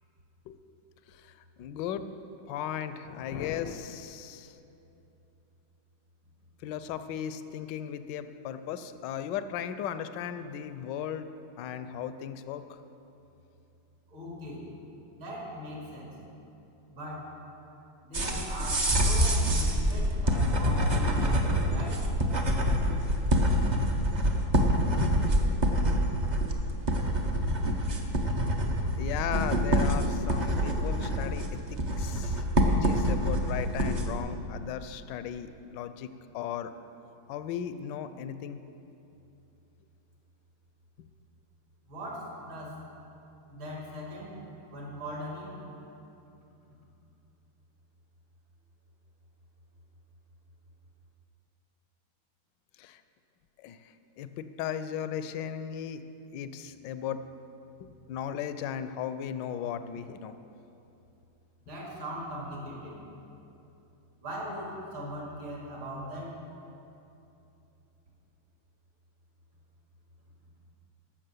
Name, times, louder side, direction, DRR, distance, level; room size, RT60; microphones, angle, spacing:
voice 1, 1.6-2.1 2.5-4.5 6.6-11.3 11.6-12.6 29.0-36.7 37.3-38.6 52.8-53.0 53.6-53.8 54.2-56.0 56.3-57.2 57.8-60.3, left 9 dB, 75° left, 11 dB, 1.1 m, -36 dB
voice 2, 14.1-14.6 15.1-16.1 16.9-17.3 18.0-22.1 41.9-42.8 43.5-44.4 44.7-45.6 61.6-63.0 64.2-66.3, equal, 70° right, -3 dB, 3.2 m, -39 dB
sound 1, 18.1-34.2, equal, 45° right, 0.5 m, -26 dB
13.5 x 6.1 x 7.8 m, 2.8 s
omnidirectional pair, 2.3 m